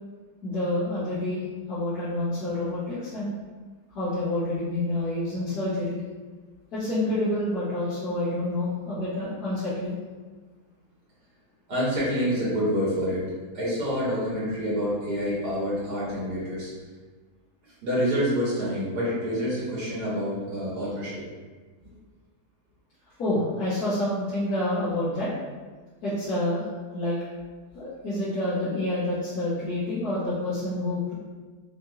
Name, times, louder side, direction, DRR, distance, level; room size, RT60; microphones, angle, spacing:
voice 1, 0.4-1.4 1.7-3.3 3.9-6.0 6.7-10.0 23.2-25.3 26.0-26.7 26.9-27.2 27.7-31.1, left 1 dB, 70° left, -14 dB, 1.8 m, -28 dB
voice 2, 11.7-13.2 13.5-16.7 17.8-21.1, equal, 80° right, -8 dB, 2.2 m, -27 dB
5.2 x 3.0 x 2.9 m, 1.4 s
omnidirectional pair, 1.7 m